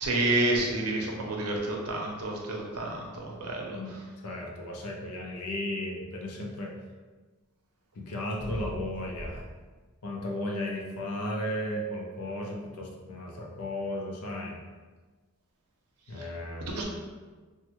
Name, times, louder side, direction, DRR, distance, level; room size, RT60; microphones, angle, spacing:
voice 1, 0.0-3.8 16.2-16.3 16.7-16.8, right 2 dB, 85° right, -1 dB, 0.6 m, -29 dB
voice 2, 4.2-6.7 7.9-9.4 10.0-14.6 16.1-16.8, left 1 dB, 85° left, -1 dB, 0.6 m, -35 dB
3.1 x 2.2 x 3.0 m, 1.4 s
head